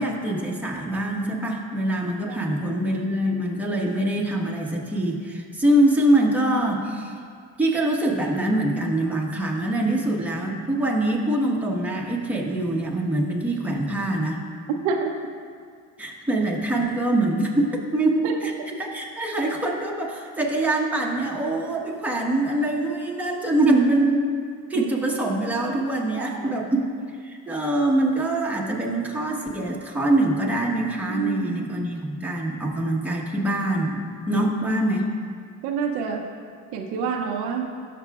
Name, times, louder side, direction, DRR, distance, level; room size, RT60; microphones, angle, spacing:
voice 1, 0.0-7.1 7.6-14.4 16.0-18.5 18.8-24.3 24.7-26.9 27.2-35.1, right 1 dB, 5° right, -2 dB, 1.2 m, -24 dB
voice 2, 26.2-26.6 31.1-31.9 35.6-36.3 36.7-37.7, right 6 dB, 90° right, 3 dB, 0.8 m, -28 dB
13.5 x 5.8 x 2.4 m, 2.1 s
cardioid pair, 95°, 39 cm